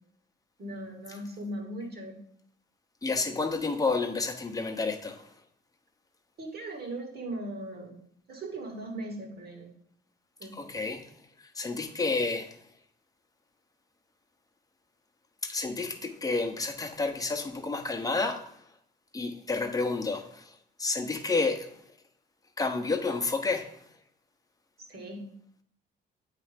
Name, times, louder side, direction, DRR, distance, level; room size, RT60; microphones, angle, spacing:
voice 1, 0.6-2.2 6.4-8.0 8.3-9.7 10.4-10.5 24.9-25.2, right 1 dB, 50° right, 2.0 m, -38 dB
voice 2, 3.0-5.2 10.5-11.0 11.6-12.5 15.4-18.4 19.1-20.5 20.8-21.7 22.6-23.7, left 3 dB, 20° left, 0.9 m, -30 dB
8.4 x 3.3 x 5.1 m
cardioid pair, 90°, 20 cm